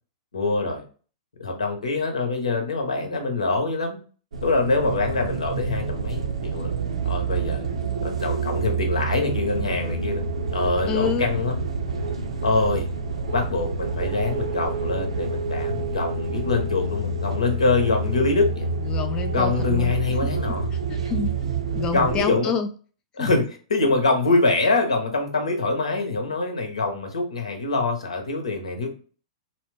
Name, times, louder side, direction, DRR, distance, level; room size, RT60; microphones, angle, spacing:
voice 1, 0.3-0.8 1.4-4.0 4.4-6.7 7.0-7.7 8.0-10.2 10.5-11.5 12.4-12.9 13.3-18.7 19.3-20.7 21.9-22.5 23.2-28.9, left 3 dB, 80° left, 3 dB, 0.9 m, -24 dB
sound 1, 4.3-22.2, right 4 dB, 75° right, 0.5 m, -28 dB
voice 2, 10.8-11.3 18.9-19.9 20.9-22.7 23.2-23.3, left 7 dB, 25° left, 6 dB, 0.3 m, -28 dB
3.0 x 2.1 x 3.1 m, 0.39 s
hypercardioid pair, 110°, 3 cm